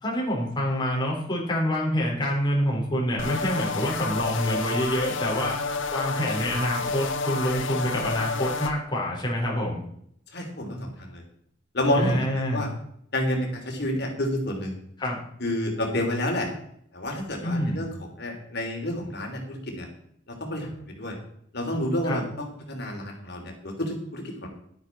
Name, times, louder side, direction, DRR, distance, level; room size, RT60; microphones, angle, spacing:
voice 1, 0.0-5.6 5.9-9.8 11.9-12.7 15.0-15.2 17.4-17.8 22.0-22.2, equal, 25° left, -3 dB, 4.2 m, -26 dB
sound 1, 3.2-8.7, left 4 dB, 90° left, 1.3 m, -30 dB
voice 2, 10.3-11.2 11.7-12.7 13.1-14.8 15.4-16.5 16.9-17.9 18.2-19.9 20.3-21.2 21.5-24.5, left 1 dB, 60° left, 2 dB, 3.2 m, -29 dB
11.5 x 9.7 x 4.6 m, 0.68 s
head